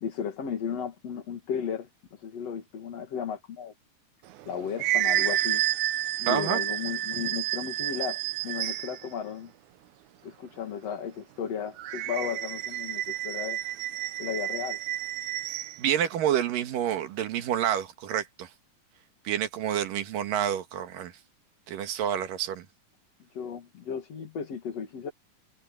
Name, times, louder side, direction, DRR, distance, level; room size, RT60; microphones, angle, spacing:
voice 1, 0.0-3.7 4.4-5.6 6.2-9.5 10.2-13.6 14.2-14.8 23.3-25.1, left 7 dB, 50° left, 3.1 m, -35 dB
sound 1, 4.3-9.1 11.8-15.8, right 13 dB, 70° right, 2.1 m, -30 dB
voice 2, 6.3-6.6 15.8-18.5 19.2-21.1 21.7-22.7, right 10 dB, 90° right, 3.3 m, -28 dB
omnidirectional pair, 3.8 m